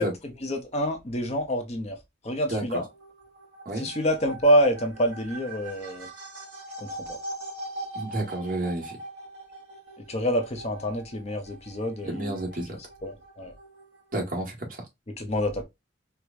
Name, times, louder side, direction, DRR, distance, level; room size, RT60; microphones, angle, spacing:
voice 1, 0.0-2.0 2.2-2.8 3.8-6.1 6.8-7.2 10.1-13.5 15.2-15.6, equal, 35° left, 0.7 m, -27 dB
voice 2, 2.5-2.8 3.6-3.9 7.9-8.9 12.0-12.7 14.1-14.8, right 1 dB, 45° right, 1.4 m, -30 dB
sound 1, 2.8-14.1, right 2 dB, 65° right, 2.5 m, -42 dB
4.5 x 2.3 x 2.4 m
head